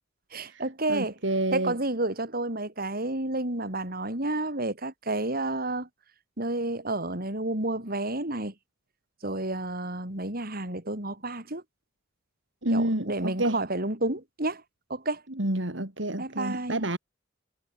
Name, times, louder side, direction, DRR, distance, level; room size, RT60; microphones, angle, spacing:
voice 1, 0.3-1.2 1.5-5.9 6.4-8.5 9.2-11.6 12.7-14.6 14.9-15.2 16.2-16.8, right 2 dB, 50° right, 7.3 m, -30 dB
voice 2, 0.9-1.7 12.6-13.6 15.4-17.0, right 1 dB, 70° right, 3.7 m, -28 dB
head